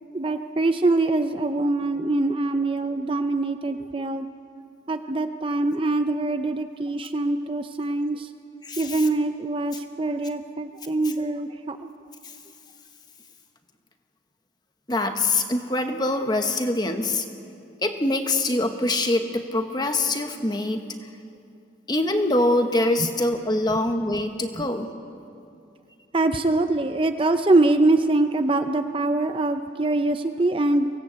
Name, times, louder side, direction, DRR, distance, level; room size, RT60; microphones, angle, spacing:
voice 1, 0.1-4.3 4.9-8.3 8.8-11.9 26.1-30.9, right 2 dB, 25° right, 8 dB, 0.6 m, -23 dB
voice 2, 8.6-9.1 14.9-17.2 17.8-20.9 21.9-24.9, left 2 dB, 20° left, 6 dB, 1.2 m, -24 dB
24.0 x 17.0 x 8.1 m, 2.5 s
head